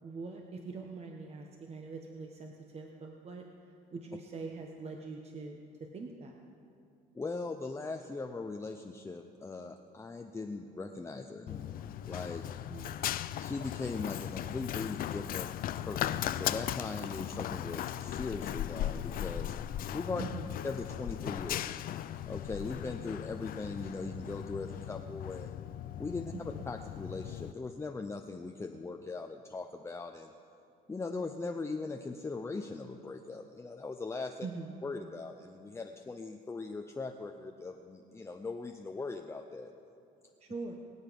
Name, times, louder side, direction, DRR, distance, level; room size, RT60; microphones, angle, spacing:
voice 1, 0.0-3.4 3.9-5.6 5.9-6.4 12.7-13.2 20.2-20.4 26.3-26.6 34.4-34.8 40.4-40.7, right 4 dB, 40° right, 2 dB, 1.1 m, -43 dB
voice 2, 7.1-12.4 13.4-15.5 15.8-19.5 19.9-20.2 20.6-21.8 22.3-25.6 26.0-26.3 26.7-30.3 30.9-34.5 34.8-39.7, left 3 dB, 15° left, 4 dB, 0.6 m, -40 dB
Run, 11.5-27.5, left 12 dB, 60° left, 0.5 m, -38 dB
23.0 x 8.2 x 5.3 m, 2.7 s
cardioid pair, 110°, 17 cm